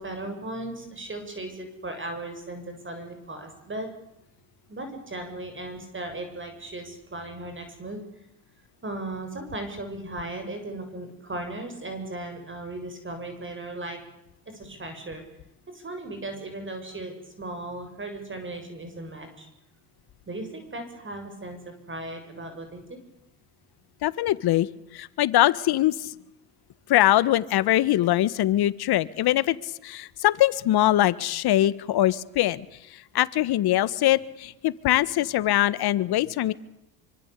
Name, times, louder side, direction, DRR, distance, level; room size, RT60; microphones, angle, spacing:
voice 1, 0.0-3.9 4.7-8.0 8.8-14.0 14.5-15.2 15.7-19.5 20.3-23.0, right 2 dB, 25° right, 6 dB, 7.3 m, -37 dB
voice 2, 24.0-24.7 24.9-26.1 26.9-32.6 32.9-36.5, left 14 dB, 55° left, 17 dB, 1.6 m, -22 dB
26.5 x 24.5 x 8.5 m, 0.84 s
hypercardioid pair, 70°, 46 cm